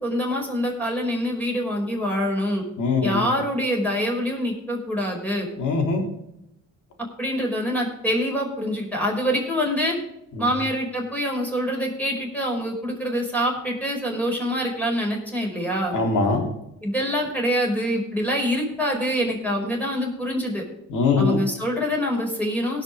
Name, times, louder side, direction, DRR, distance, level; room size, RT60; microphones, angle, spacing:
voice 1, 0.0-2.6 3.0-5.5 7.2-10.0 10.4-15.9 16.8-20.6 21.2-22.8, equal, 5° left, -1 dB, 5.1 m, -25 dB
voice 2, 2.8-3.2 5.6-6.0 10.4-10.5 15.9-16.5 20.9-21.4, left 4 dB, 80° left, 2 dB, 3.4 m, -22 dB
18.0 x 6.4 x 5.0 m, 0.84 s
cardioid pair, 90°, 30 cm